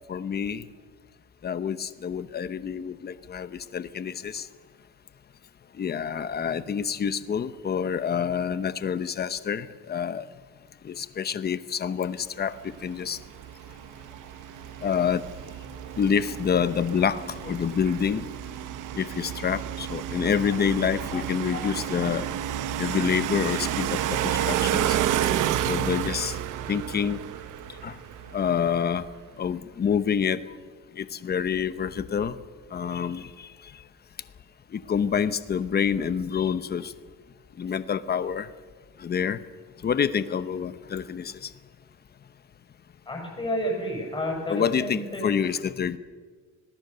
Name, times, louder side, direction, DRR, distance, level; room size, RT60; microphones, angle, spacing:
voice 1, 0.1-0.6 1.4-4.5 5.8-10.3 10.8-13.2 14.8-15.2 16.0-18.3 18.9-22.3 22.8-25.0 25.6-26.4 26.7-27.2 27.8-28.0 28.3-29.1 29.4-30.6 31.0-32.4 32.7-33.5 34.7-36.9 37.6-38.5 39.0-39.4 39.8-41.5 44.5-46.0, left 7 dB, 30° left, 13 dB, 0.9 m, -27 dB
sound 1, 12.6-28.8, right 11 dB, 80° right, 1.0 m, -31 dB
voice 2, 43.0-45.4, equal, 15° left, 0 dB, 6.6 m, -30 dB
26.0 x 19.5 x 6.9 m, 1.5 s
cardioid pair, 165°, 30 cm